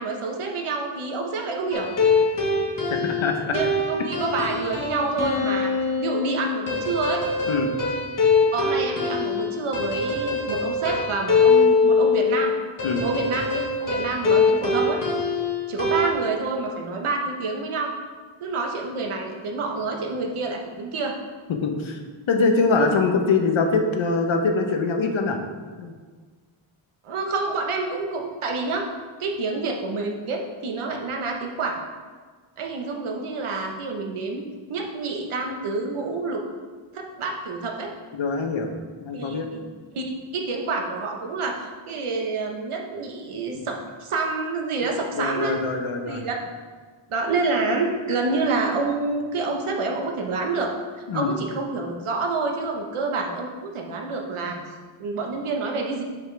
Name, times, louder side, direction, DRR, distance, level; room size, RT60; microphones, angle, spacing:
voice 1, 0.0-1.9 3.5-5.7 6.0-7.2 8.5-12.5 13.0-15.0 15.7-17.9 18.4-21.2 27.0-28.8 29.2-31.8 32.6-36.4 36.9-37.9 39.1-39.6 39.9-45.6 46.1-46.4 47.1-50.7 51.0-54.6 55.0-56.0, right 3 dB, 80° right, 1 dB, 1.3 m, -28 dB
sound 1, 1.7-16.1, left 4 dB, 40° left, 1.3 m, -23 dB
voice 2, 3.0-3.5 7.5-7.7 12.8-13.0 21.6-22.0 22.3-25.4 25.8-25.9 38.1-38.7 39.0-39.5 43.5-43.7 45.1-46.2 51.1-51.3, left 4 dB, 70° left, 4 dB, 1.0 m, -23 dB
10.5 x 5.5 x 3.4 m, 1.5 s
wide cardioid pair, 175°, 49 cm